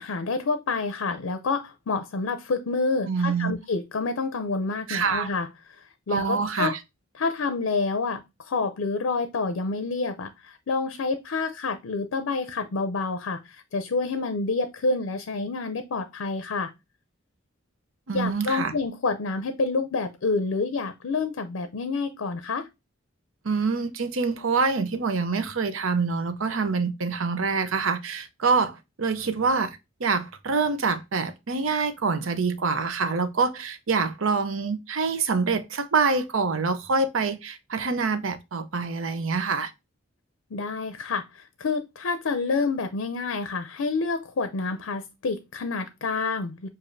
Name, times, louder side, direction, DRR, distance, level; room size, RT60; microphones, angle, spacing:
voice 1, 0.0-6.7 7.2-16.7 18.1-22.7 40.5-46.7, left 4 dB, 85° left, 0.5 m, -28 dB
voice 2, 3.1-3.5 4.9-5.3 6.1-6.8 18.1-18.7 23.4-39.7, right 4 dB, 80° right, 0.7 m, -26 dB
6.8 x 2.6 x 2.6 m
head